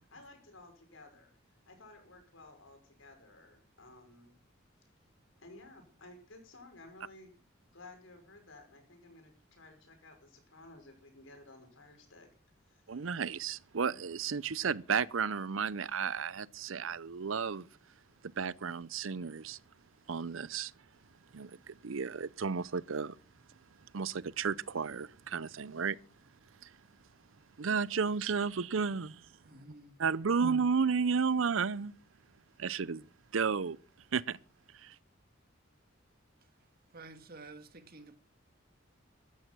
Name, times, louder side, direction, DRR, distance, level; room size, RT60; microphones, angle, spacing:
voice 1, 0.1-1.4 1.7-4.4 5.4-7.3 7.7-12.3 12.6-13.2, left 2 dB, 75° left, 5.6 m, -55 dB
voice 2, 12.9-17.7 18.4-19.6 20.1-20.7 21.3-23.2 23.9-26.0 26.6-26.7 27.6-29.3 30.0-31.9 32.6-33.0 33.3-33.8 34.1-34.4 34.7-34.9, right 5 dB, 85° right, 0.6 m, -33 dB
voice 3, 29.4-30.0 30.3-30.5 36.4-36.5 36.9-38.2, right 3 dB, 50° right, 1.8 m, -51 dB
15.0 x 12.0 x 6.1 m
head